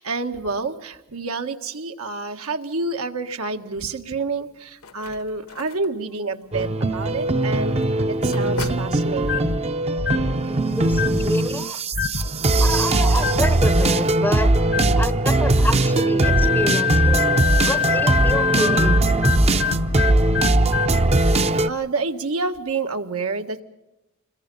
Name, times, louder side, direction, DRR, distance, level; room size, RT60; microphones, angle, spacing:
voice 1, 0.0-9.5 21.6-23.6, right 3 dB, 85° right, 5 dB, 1.6 m, -28 dB
sound 1, 4.4-9.7, left 3 dB, 80° left, 1.3 m, -40 dB
sound 2, 6.5-21.7, right 2 dB, 30° right, 0.7 m, -20 dB
sound 3, 9.2-9.6 10.0-10.3 10.9-11.3 11.9-12.3 13.1-13.5 14.6-15.0 16.2-21.0, left 6 dB, 50° left, 1.0 m, -24 dB
voice 2, 10.5-11.8 12.6-14.5 15.0-17.2 17.6-19.1, left 1 dB, 10° left, 14 dB, 0.7 m, -28 dB
26.5 x 21.5 x 5.4 m, 0.94 s
head